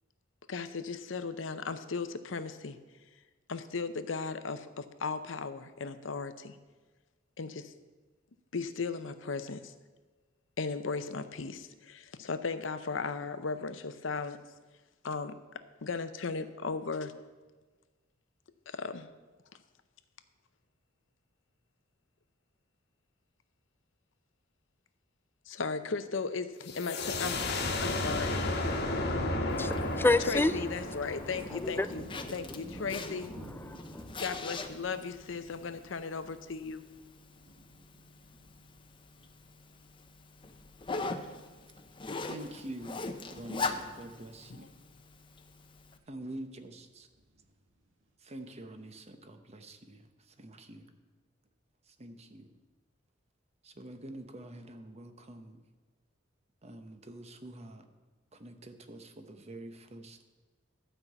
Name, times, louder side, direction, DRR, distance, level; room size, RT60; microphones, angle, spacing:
voice 1, 0.5-2.8 3.5-6.6 7.4-7.7 8.5-9.7 10.6-14.4 15.0-15.3 15.8-17.1 18.7-19.1 25.5-27.4 27.8-28.4 30.2-33.3 34.2-36.8, left 4 dB, 80° left, 11 dB, 0.7 m, -36 dB
sound 1, 26.7-32.2, left 2 dB, 60° left, 1.3 m, -33 dB
voice 2, 28.8-30.5 31.6-31.9 33.8-34.1, left 2 dB, 10° left, 14 dB, 0.3 m, -29 dB
Zipper (clothing), 29.5-46.0, left 3 dB, 25° left, 0.7 m, -42 dB
Thunder, 29.6-39.9 40.3-40.4 40.8-42.3 42.5-42.7 43.0-43.8 44.2-44.3 44.7-44.8 47.2-47.7, right 1 dB, 80° right, 1.6 m, -52 dB
voice 3, 42.3-43.0 43.3-44.7 46.1-47.1 48.2-50.9 51.9-52.5 53.6-55.6 56.6-57.8 58.3-60.2, right 1 dB, 35° right, 7 dB, 0.9 m, -46 dB
12.0 x 5.6 x 8.0 m, 1.3 s
head